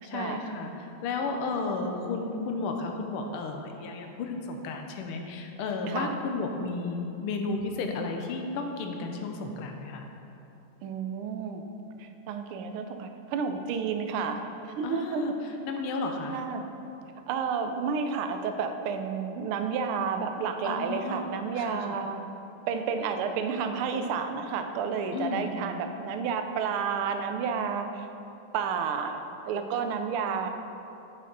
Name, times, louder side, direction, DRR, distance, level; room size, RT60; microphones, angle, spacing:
voice 1, 0.0-10.1 14.8-15.3 15.6-16.4 20.6-21.2 21.6-22.0 25.1-25.6, left 3 dB, 85° left, 4 dB, 1.6 m, -33 dB
voice 2, 10.8-11.6 12.0-15.4 16.3-16.6 17.3-22.2 22.7-28.1 28.5-30.5, right 6 dB, 90° right, 7 dB, 1.5 m, -31 dB
8.1 x 5.9 x 3.9 m, 2.9 s
omnidirectional pair, 2.3 m